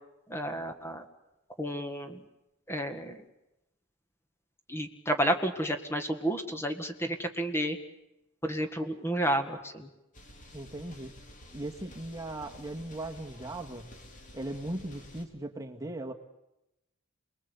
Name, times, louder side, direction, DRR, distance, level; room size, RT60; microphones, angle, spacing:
voice 1, 0.3-1.1 1.6-2.2 2.7-3.2 4.7-7.8 8.4-9.9, right 1 dB, 10° left, 6 dB, 1.8 m, -31 dB
sound 1, 10.1-15.2, left 1 dB, 35° left, 3.8 m, -51 dB
voice 2, 10.5-11.1 11.5-13.9 14.3-16.1, right 1 dB, 15° right, 3 dB, 2.0 m, -38 dB
30.0 x 21.5 x 8.4 m, 0.92 s
head